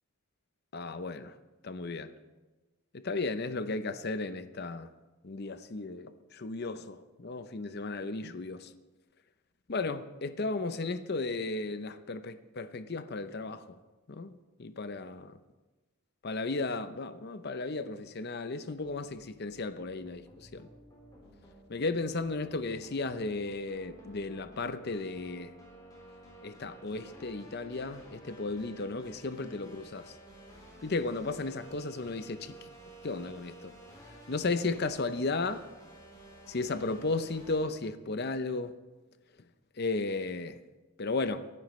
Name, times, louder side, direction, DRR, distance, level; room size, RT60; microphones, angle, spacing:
voice 1, 0.7-1.3 1.6-2.1 2.9-4.9 5.2-8.7 9.7-13.8 14.1-14.3 14.6-15.4 16.2-20.7 21.7-25.5 26.4-30.1 30.8-32.6 33.0-33.7 34.3-35.6 36.5-38.7 39.8-40.6 41.0-41.5, left 3 dB, 45° left, 0.7 m, -34 dB
sound 1, 18.7-37.7, right 1 dB, 20° left, 4.0 m, -53 dB
23.5 x 12.0 x 3.2 m
head